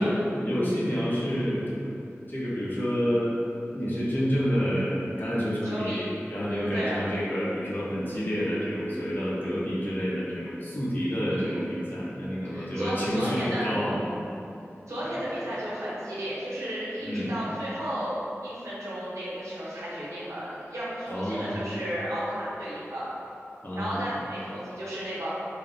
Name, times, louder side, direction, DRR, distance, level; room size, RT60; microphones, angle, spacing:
voice 1, 0.0-1.7 2.3-3.4 3.7-14.0 17.0-17.3 21.1-21.6 23.6-24.0, equal, 40° left, -8 dB, 0.8 m, -28 dB
voice 2, 5.6-6.1 6.5-7.0 11.3-11.6 12.5-13.8 14.9-23.1 23.8-25.3, equal, 90° right, -9 dB, 0.8 m, -33 dB
3.2 x 2.1 x 2.6 m, 2.6 s
wide cardioid pair, 45°, 5 cm